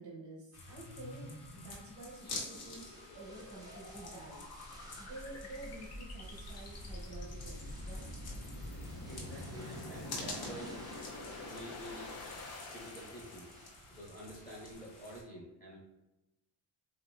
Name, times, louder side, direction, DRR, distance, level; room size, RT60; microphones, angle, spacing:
voice 1, 0.0-4.4 5.0-8.3, right 2 dB, 75° right, -4 dB, 1.1 m, -50 dB
sound 1, 0.5-15.2, left 2 dB, 55° left, 0.9 m, -49 dB
sound 2, 0.6-14.0, left 1 dB, 35° left, 0.5 m, -47 dB
sound 3, 2.8-13.7, right 1 dB, 10° right, 0.6 m, -59 dB
voice 2, 8.7-10.8 11.4-12.1 12.7-13.5 13.9-15.8, equal, 20° left, -4 dB, 0.9 m, -48 dB
2.8 x 2.7 x 2.2 m, 0.98 s
cardioid pair, 90°, 44 cm